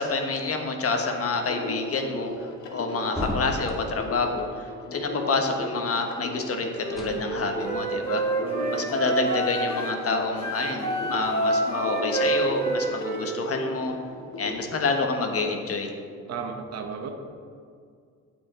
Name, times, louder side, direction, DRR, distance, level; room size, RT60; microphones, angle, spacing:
voice 1, 0.0-2.3 2.7-8.2 8.7-14.0 14.4-15.9, left 3 dB, 50° left, 4 dB, 1.4 m, -28 dB
sound 1, 0.9-14.6, left 2 dB, 80° left, 1.6 m, -37 dB
sound 2, 3.1-4.0 6.9-7.2, left 1 dB, ahead, 1.7 m, -32 dB
Wind instrument woodwind instrument, 6.7-10.0 10.4-13.8, right 2 dB, 20° left, 2.5 m, -28 dB
voice 2, 8.4-9.0 16.3-17.1, right 5 dB, 55° right, 4 dB, 1.1 m, -35 dB
15.5 x 5.2 x 3.8 m, 2.2 s
cardioid pair, 90°, 30 cm